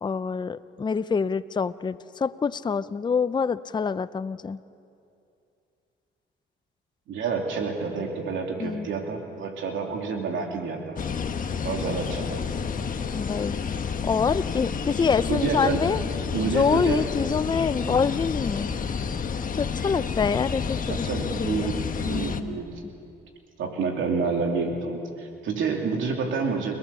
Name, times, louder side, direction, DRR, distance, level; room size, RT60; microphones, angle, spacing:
voice 1, 0.0-4.6 8.6-8.9 13.1-13.6 14.0-16.0 16.5-18.7 19.5-21.1 21.4-21.7 22.0-22.6, left 5 dB, 20° left, 14 dB, 0.5 m, -26 dB
voice 2, 7.1-11.0 11.6-12.4 15.3-15.8 16.3-17.0 17.9-18.0 20.9-22.8 23.6-26.7, right 5 dB, 80° right, 2 dB, 2.8 m, -29 dB
sound 1, 11.0-22.4, left 6 dB, 45° left, 1.2 m, -30 dB
29.5 x 18.0 x 6.9 m, 2.6 s
cardioid pair, 90°, 20 cm